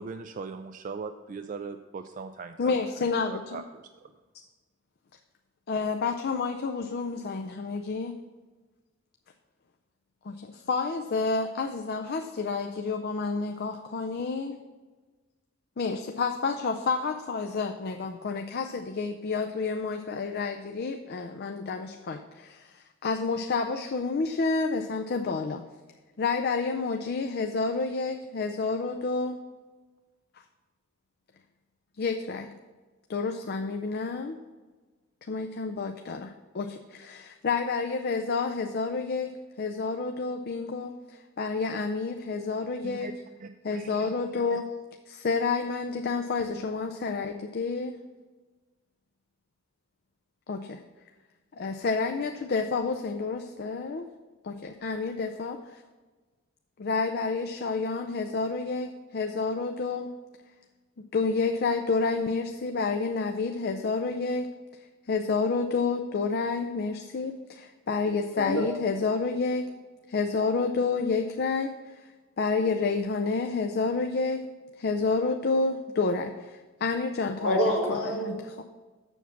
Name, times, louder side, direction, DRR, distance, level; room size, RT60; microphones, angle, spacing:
voice 1, 0.0-2.7 3.3-4.1 42.8-43.1 43.4-44.6, right 5 dB, 40° right, 7 dB, 0.3 m, -40 dB
voice 2, 2.6-3.6 5.7-8.2 10.2-14.6 15.8-25.6 26.2-29.4 32.0-32.5 33.1-34.4 35.3-39.3 39.6-43.1 43.6-44.7 45.1-48.0 50.5-50.8 51.5-54.1 54.4-55.8 56.8-60.1 61.1-64.5 65.1-69.7 70.1-72.0 72.4-74.4 74.8-77.6 77.9-78.4, left 4 dB, 50° left, 5 dB, 0.5 m, -29 dB
voice 3, 77.4-78.6, equal, 80° left, -6 dB, 1.9 m, -27 dB
7.2 x 7.0 x 5.8 m, 1.3 s
head